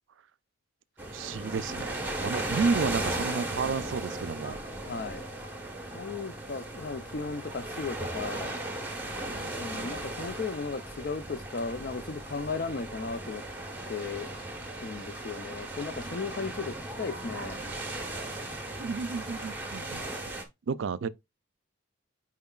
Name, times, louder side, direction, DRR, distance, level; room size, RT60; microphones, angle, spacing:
sound 1, 1.0-20.4, right 1 dB, 10° right, 1.1 m, -37 dB
voice 1, 1.1-4.6 9.2-9.6 18.8-20.0 20.7-21.1, right 5 dB, 70° right, 0.4 m, -32 dB
voice 2, 4.9-5.2 5.9-8.6 9.6-13.4 13.9-14.3 14.8-17.7, left 4 dB, 45° left, 0.5 m, -36 dB
9.3 x 4.5 x 2.4 m
head